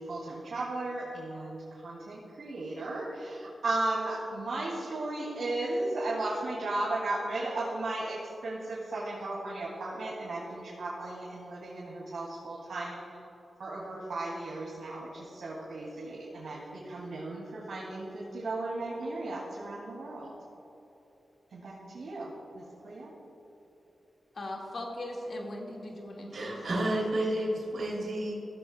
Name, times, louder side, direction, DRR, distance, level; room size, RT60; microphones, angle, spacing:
voice 1, 0.0-13.0 13.6-20.3 21.5-23.1, right 2 dB, 85° right, -6 dB, 2.3 m, -35 dB
voice 2, 24.3-26.9, left 1 dB, 50° left, -1 dB, 1.8 m, -39 dB
voice 3, 26.3-28.3, right 1 dB, 65° right, -3 dB, 2.8 m, -30 dB
15.5 x 13.5 x 2.2 m, 2.9 s
wide cardioid pair, 175°, 0 cm